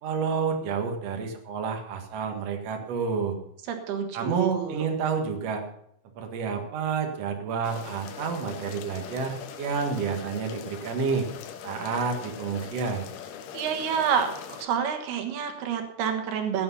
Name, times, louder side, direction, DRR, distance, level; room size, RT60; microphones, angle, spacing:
voice 1, 0.0-3.4 4.1-5.6 6.2-11.3 11.6-13.1, right 5 dB, 50° right, 3 dB, 2.4 m, -29 dB
voice 2, 3.7-4.8 13.5-14.3 14.6-16.6, right 7 dB, 80° right, 5 dB, 3.5 m, -28 dB
sound 1, 7.6-14.7, left 8 dB, 85° left, 3.1 m, -41 dB
15.5 x 8.8 x 5.6 m, 0.72 s
omnidirectional pair, 4.5 m